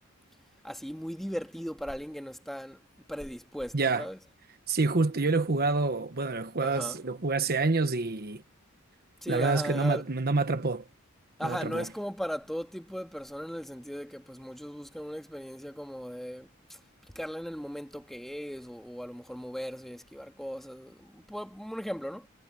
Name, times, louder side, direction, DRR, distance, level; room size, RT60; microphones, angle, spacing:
voice 1, 0.6-2.8 3.1-4.2 6.6-7.0 9.2-10.0 11.4-16.8 17.2-22.3, equal, ahead, 2.2 m, -37 dB
voice 2, 3.7-4.1 4.7-8.4 9.3-10.8 11.4-11.9, right 3 dB, 45° right, 1.2 m, -27 dB
head